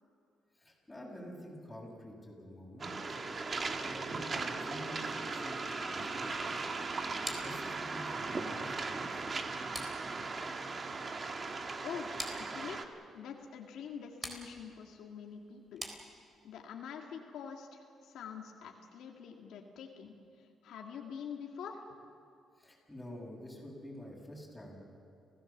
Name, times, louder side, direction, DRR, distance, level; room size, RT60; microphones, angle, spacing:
voice 1, 0.5-3.2 3.5-6.6 7.2-9.2 22.6-24.8, equal, 10° left, -2 dB, 7.5 m, -48 dB
Waves surf, 2.8-12.8, right 3 dB, 35° right, 1.7 m, -38 dB
sound 1, 7.2-16.6, right 1 dB, 15° right, 4.0 m, -48 dB
voice 2, 12.4-15.8 16.4-21.9, left 7 dB, 85° left, 1 dB, 2.0 m, -46 dB
30.0 x 16.5 x 7.3 m, 2.5 s
cardioid pair, 100°, 0 cm